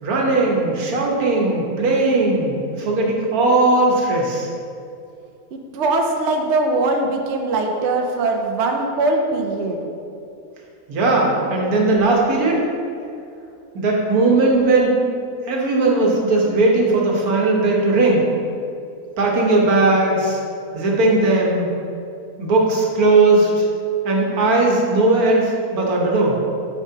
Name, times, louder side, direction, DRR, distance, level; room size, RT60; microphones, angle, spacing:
voice 1, 0.0-4.5 10.9-12.6 13.7-15.0 15.5-18.2 19.2-20.4 20.7-21.7 22.4-23.7 24.0-26.4, right 2 dB, 85° right, -2 dB, 1.5 m, -18 dB
voice 2, 5.5-9.8, right 2 dB, 60° right, 2 dB, 0.9 m, -21 dB
9.6 x 5.1 x 2.8 m, 2.6 s
omnidirectional pair, 1.5 m